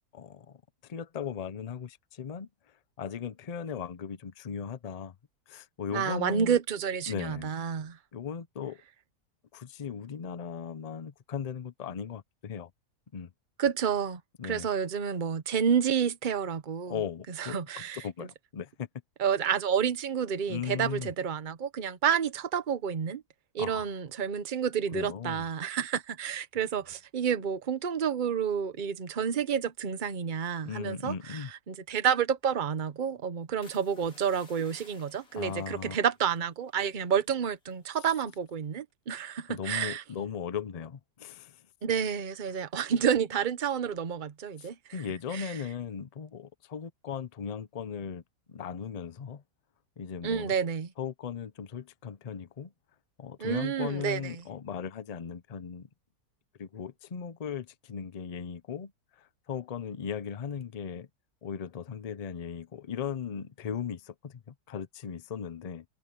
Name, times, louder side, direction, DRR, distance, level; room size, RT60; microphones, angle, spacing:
voice 1, 0.1-2.5 3.0-5.2 5.5-6.6 7.1-7.5 8.1-8.8 9.5-12.7 13.1-13.3 14.4-14.7 16.9-18.9 20.5-21.1 23.6-23.9 24.9-25.4 30.6-31.5 35.3-36.0 39.5-41.6 44.6-48.2 48.5-49.4 50.0-50.5 51.0-52.7 53.2-55.9 56.6-58.9 59.2-61.1 61.4-65.8, left 7 dB, 40° left, 0.5 m, -37 dB
voice 2, 5.9-8.0 13.6-17.0 17.4-18.0 19.2-23.2 23.5-40.0 41.8-44.8 45.3-45.5 50.2-50.9 53.4-54.4, right 7 dB, 35° right, 1.0 m, -29 dB
sound 1, 33.6-37.4 37.6-38.0 38.5-38.8, left 4 dB, 65° left, 3.1 m, -58 dB
omnidirectional pair, 1.6 m